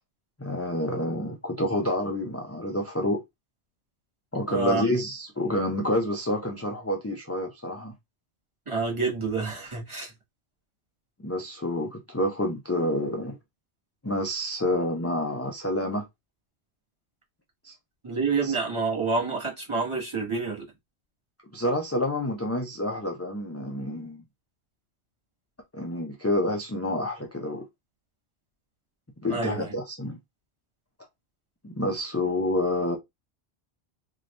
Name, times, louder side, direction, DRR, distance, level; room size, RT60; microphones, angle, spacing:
voice 1, 0.4-3.2 4.3-7.9 11.2-13.4 14.0-16.1 17.6-17.7 18.4-18.5 21.5-24.2 25.7-27.6 29.2-30.2 31.6-33.0, left 1 dB, 20° left, 0.5 m, -28 dB
voice 2, 4.5-4.9 8.7-10.1 18.0-20.7 29.3-29.6, right 4 dB, 25° right, 1.8 m, -28 dB
3.7 x 2.9 x 3.2 m
omnidirectional pair, 1.1 m